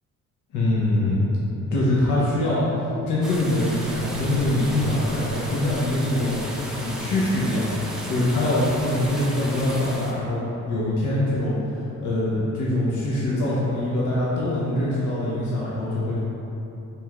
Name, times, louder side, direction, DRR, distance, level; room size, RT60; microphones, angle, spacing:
voice 1, 0.5-1.3 1.7-2.6 3.1-6.4 6.7-7.7 8.0-16.2, left 1 dB, 80° left, -7 dB, 0.8 m, -23 dB
sound 1, 3.2-10.1, equal, ahead, 0.5 m, -34 dB
4.4 x 3.4 x 2.3 m, 3.0 s
cardioid pair, 90°, 30 cm